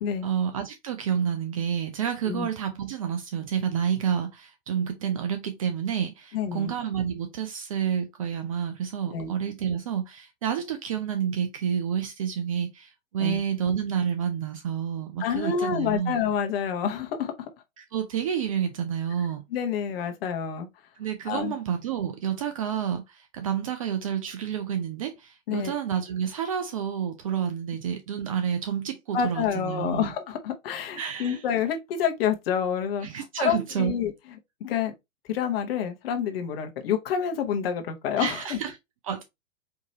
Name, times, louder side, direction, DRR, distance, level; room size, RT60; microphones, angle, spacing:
voice 1, 0.2-16.2 17.8-19.4 21.0-30.1 31.0-31.4 33.0-34.0 38.2-38.8 39.0-39.2, right 8 dB, 30° right, 0.4 m, -29 dB
voice 2, 6.3-6.7 9.1-9.3 13.2-13.4 15.2-17.5 19.5-20.7 21.3-21.5 25.5-25.7 29.1-34.1 34.6-34.9 35.3-38.6, left 8 dB, 50° left, 1.1 m, -28 dB
4.4 x 2.9 x 2.7 m
figure-of-eight pair, 110°, 39 cm